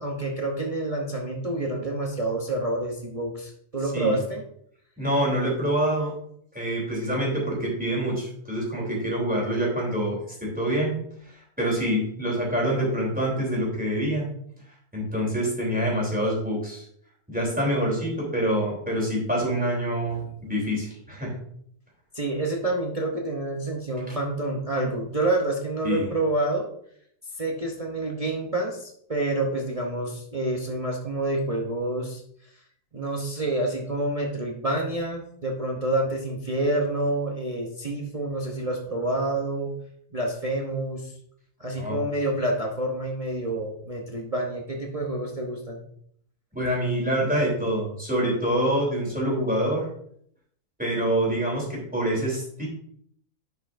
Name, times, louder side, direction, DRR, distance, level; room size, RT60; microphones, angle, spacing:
voice 1, 0.0-4.4 20.1-20.3 22.1-26.7 27.4-32.2 32.9-39.7 40.1-41.1 41.6-45.8, right 2 dB, 30° right, -1 dB, 0.8 m, -28 dB
voice 2, 5.0-6.1 6.5-10.9 11.3-14.3 14.9-16.8 17.3-21.3 25.8-26.1 41.8-42.0 46.5-49.8 50.8-52.7, right 1 dB, 5° right, -4 dB, 3.2 m, -26 dB
10.5 x 5.6 x 2.6 m, 0.67 s
omnidirectional pair, 1.7 m